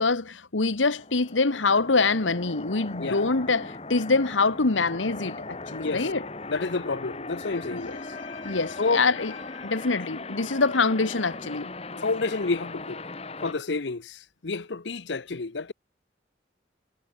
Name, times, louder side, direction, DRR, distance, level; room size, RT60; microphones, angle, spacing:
voice 1, 0.0-6.3 7.7-11.7, left 3 dB, 90° left, 1.4 m, -25 dB
sound 1, 0.8-13.5, left 3 dB, 30° left, 1.8 m, -39 dB
voice 2, 6.5-7.9 8.8-9.1 11.9-13.0 13.4-15.7, left 3 dB, 70° left, 0.8 m, -29 dB
head